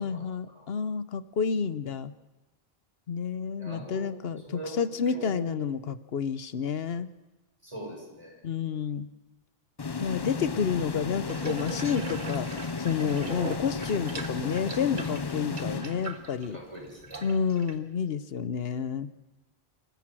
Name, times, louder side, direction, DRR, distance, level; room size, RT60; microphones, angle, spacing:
voice 1, 0.0-2.1 3.1-7.1 8.4-9.1 10.0-16.6 17.2-19.1, left 6 dB, 70° left, 15 dB, 1.1 m, -30 dB
voice 2, 3.6-4.1 4.4-5.6 7.6-8.4 16.5-17.3, right 1 dB, 30° right, -1 dB, 6.8 m, -42 dB
sound 1, 9.8-16.5, left 4 dB, 30° left, 0.6 m, -34 dB
Water tap faucet / Bathtub (filling or washing), 11.3-17.8, right 4 dB, 50° right, 1.7 m, -41 dB
26.0 x 14.5 x 7.6 m, 1.2 s
omnidirectional pair, 1.1 m